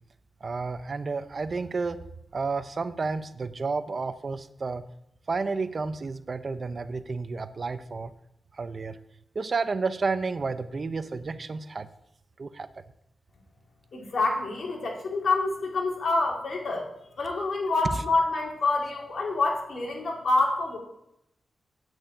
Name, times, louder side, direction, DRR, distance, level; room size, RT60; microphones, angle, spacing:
voice 1, 0.4-2.0 2.3-4.8 5.3-8.1 8.5-9.0 9.3-11.9 12.4-12.7, right 4 dB, 45° right, 11 dB, 0.7 m, -31 dB
voice 2, 13.9-16.9 17.2-20.8, left 3 dB, 70° left, 0 dB, 2.9 m, -27 dB
8.8 x 6.3 x 8.5 m, 0.80 s
wide cardioid pair, 95°, 0 cm